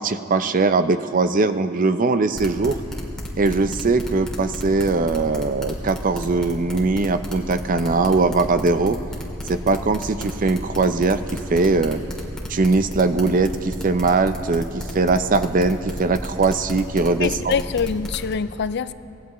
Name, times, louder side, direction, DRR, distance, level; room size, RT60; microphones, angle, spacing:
voice 1, 0.0-2.8 3.4-9.0 9.5-12.0 12.5-17.5, right 3 dB, 40° right, 11 dB, 0.5 m, -20 dB
sound 1, 2.4-18.3, equal, 5° left, 2.1 m, -32 dB
voice 2, 17.2-18.9, left 6 dB, 55° left, 14 dB, 0.4 m, -24 dB
25.0 x 17.5 x 3.1 m, 2.7 s
head